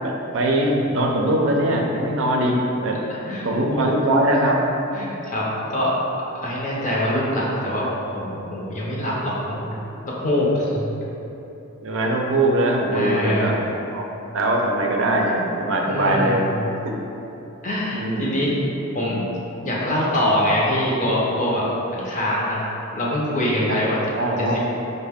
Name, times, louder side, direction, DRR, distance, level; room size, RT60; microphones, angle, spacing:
voice 1, 0.0-3.0 3.4-4.6 11.8-13.6 13.9-14.0 14.3-16.4 16.8-16.9 17.9-18.4 23.7-23.8 24.2-24.6, right 1 dB, 65° right, 0 dB, 0.5 m, -21 dB
voice 2, 3.1-3.9 4.9-5.9 6.4-7.9 8.1-9.8 10.0-10.9 12.9-13.5 15.9-16.6 17.6-18.6 18.9-19.2 19.6-22.6 22.9-24.0 24.4-24.7, left 1 dB, 35° left, -5 dB, 0.7 m, -24 dB
5.2 x 2.1 x 3.5 m, 3.0 s
head